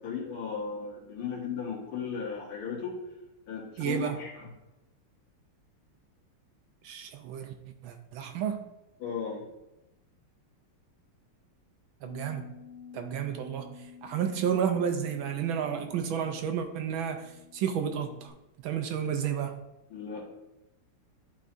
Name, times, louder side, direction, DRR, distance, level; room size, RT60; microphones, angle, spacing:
voice 1, 0.0-3.0 3.5-4.5 9.0-9.5 19.0-19.2 19.9-20.2, left 6 dB, 75° left, -2 dB, 2.4 m, -36 dB
voice 2, 3.8-4.2 6.8-7.5 7.8-8.6 12.0-12.4 12.9-13.8 14.0-18.3 18.6-19.6, right 8 dB, 75° right, 6 dB, 1.3 m, -31 dB
Bass guitar, 12.1-18.3, left 7 dB, 30° left, 1.6 m, -51 dB
11.5 x 4.4 x 2.5 m, 0.95 s
omnidirectional pair, 2.4 m